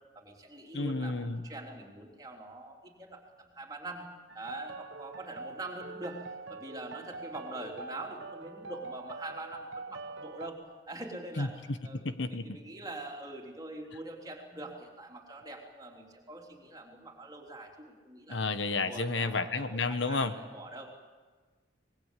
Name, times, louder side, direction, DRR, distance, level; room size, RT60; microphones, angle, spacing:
voice 1, 0.1-4.0 4.3-6.2 6.5-10.6 10.9-12.0 12.3-18.5 18.8-20.9, right 2 dB, 20° right, 0 dB, 3.5 m, -44 dB
voice 2, 0.7-1.4 11.4-12.5 18.3-20.3, left 3 dB, 70° left, 10 dB, 1.2 m, -31 dB
sound 1, 4.3-10.5, right 3 dB, 80° right, 1.0 m, -44 dB
25.5 x 20.5 x 8.3 m, 1.4 s
head